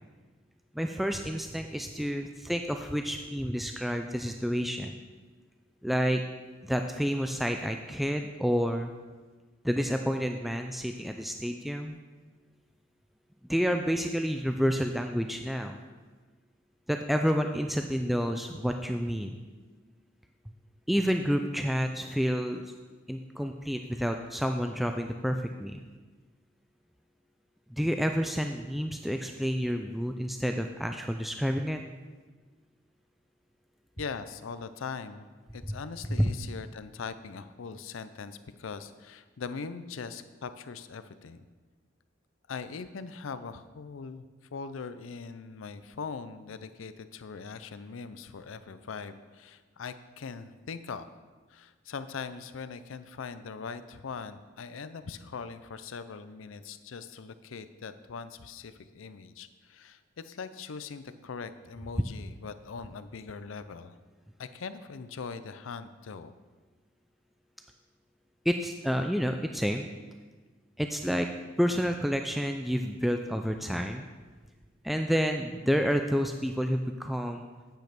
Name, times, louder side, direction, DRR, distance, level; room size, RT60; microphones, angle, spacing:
voice 1, 0.7-4.9 5.8-6.2 6.7-8.9 9.6-12.0 13.5-15.8 16.9-19.4 20.9-22.6 23.1-25.8 27.7-31.8 36.2-36.3 68.5-69.9 70.8-71.3 71.6-74.1 74.8-77.5, equal, ahead, 4 dB, 0.3 m, -29 dB
voice 2, 34.0-35.3 35.5-41.4 42.5-44.3 44.5-51.1 51.5-64.0 64.4-66.3, left 5 dB, 85° left, 12 dB, 0.5 m, -41 dB
9.1 x 5.3 x 5.9 m, 1.3 s
head